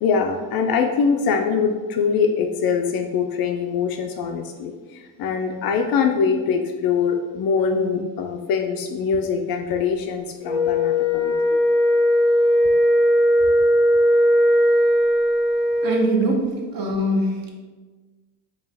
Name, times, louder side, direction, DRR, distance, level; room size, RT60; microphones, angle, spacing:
voice 1, 0.0-11.6, left 6 dB, 50° left, 4 dB, 0.4 m, -23 dB
Wind instrument woodwind instrument, 10.4-16.1, equal, ahead, 0.5 m, -18 dB
voice 2, 15.8-17.5, right 1 dB, 45° right, 0 dB, 0.9 m, -22 dB
4.5 x 2.4 x 3.3 m, 1.3 s
supercardioid pair, 100°, 48 cm